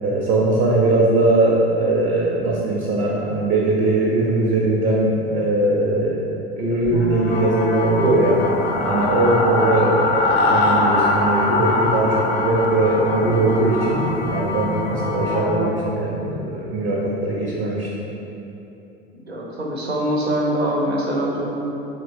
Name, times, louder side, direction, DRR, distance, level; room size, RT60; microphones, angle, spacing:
voice 1, 0.0-6.2 6.5-8.4 8.8-17.9, right 2 dB, 30° right, -4 dB, 0.4 m, -20 dB
sound 1, 6.9-15.8, left 2 dB, 80° left, 0.5 m, -23 dB
sound 2, 7.3-15.4, left 3 dB, 30° left, 0.5 m, -30 dB
voice 2, 19.3-21.6, right 1 dB, 90° right, -2 dB, 0.5 m, -23 dB
3.1 x 2.9 x 2.5 m, 3.0 s
figure-of-eight pair, 70°, 31 cm